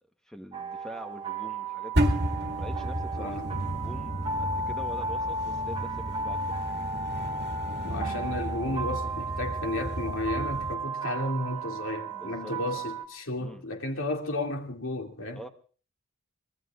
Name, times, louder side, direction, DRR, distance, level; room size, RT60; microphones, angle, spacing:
voice 1, 0.2-2.1 2.6-6.4 6.7-6.9 12.1-12.8 13.4-13.6 15.3-15.5, equal, 5° left, 1.1 m, -45 dB
sound 1, 0.5-13.0, right 3 dB, 25° right, 1.1 m, -34 dB
sound 2, 1.9-10.7, equal, 50° right, 2.1 m, -33 dB
voice 2, 3.2-3.5 7.8-15.4, left 2 dB, 60° left, 2.6 m, -33 dB
24.5 x 20.5 x 2.5 m
head